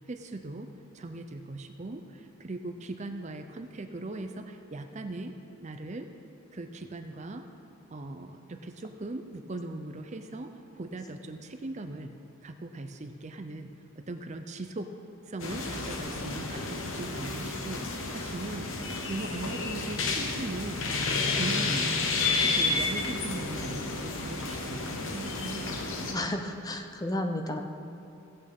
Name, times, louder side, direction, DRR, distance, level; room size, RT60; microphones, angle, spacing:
voice 1, 0.1-0.7 0.9-5.3 5.6-6.1 6.5-7.5 7.9-12.1 12.4-14.9 15.3-20.8 21.3-22.0 22.5-25.8, right 2 dB, 30° right, 7 dB, 0.5 m, -39 dB
sound 1, 15.4-26.1, left 3 dB, 65° left, 1.1 m, -31 dB
voice 2, 26.1-27.6, left 1 dB, 15° left, 4 dB, 0.5 m, -32 dB
16.0 x 8.7 x 3.6 m, 2.7 s
head